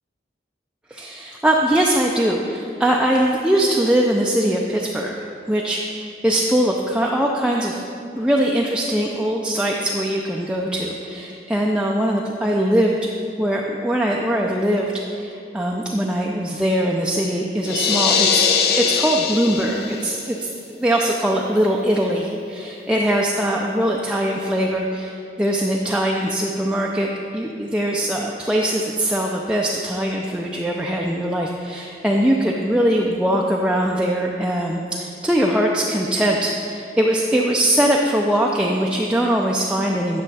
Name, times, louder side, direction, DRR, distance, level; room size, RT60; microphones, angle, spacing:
voice 1, 0.9-7.8 8.2-13.0 13.4-18.4 18.7-20.5 20.8-40.2, right 1 dB, 5° right, -2 dB, 0.4 m, -21 dB
sound 1, 17.6-20.1, left 6 dB, 60° left, 0.5 m, -20 dB
10.0 x 6.4 x 4.1 m, 2.6 s
head